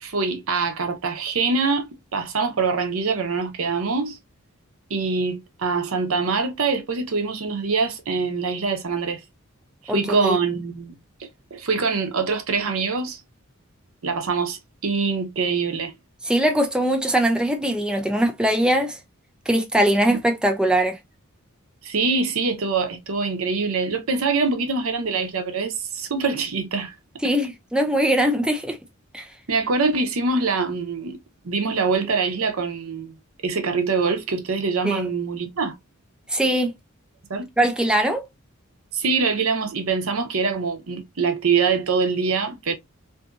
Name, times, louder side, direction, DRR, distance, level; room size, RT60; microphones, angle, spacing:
voice 1, 0.0-4.2 4.9-9.2 9.9-13.2 14.0-15.9 20.1-20.2 21.8-27.0 27.2-27.3 29.5-31.2 31.4-33.2 33.4-35.7 37.3-37.5 38.9-42.7, right 4 dB, 80° right, 0.7 m, -24 dB
voice 2, 9.9-10.4 16.2-19.0 19.5-21.0 27.2-28.8 29.1-29.3 34.8-35.0 36.3-36.7 37.6-38.2, right 1 dB, 5° right, 0.4 m, -21 dB
2.6 x 2.6 x 2.3 m
head